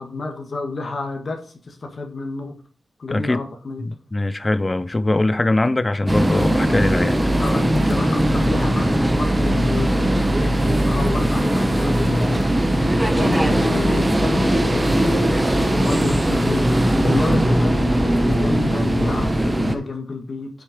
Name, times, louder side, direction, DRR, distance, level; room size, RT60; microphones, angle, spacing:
voice 1, 0.0-2.5 3.0-3.9 7.4-12.9 13.2-20.5, left 3 dB, 45° left, 1.6 m, -30 dB
voice 2, 3.1-3.5 3.8-7.2, left 2 dB, 20° left, 0.5 m, -21 dB
sound 1, 6.1-19.8, right 1 dB, 15° right, 1.1 m, -19 dB
8.2 x 6.5 x 5.0 m
wide cardioid pair, 125°, 0 cm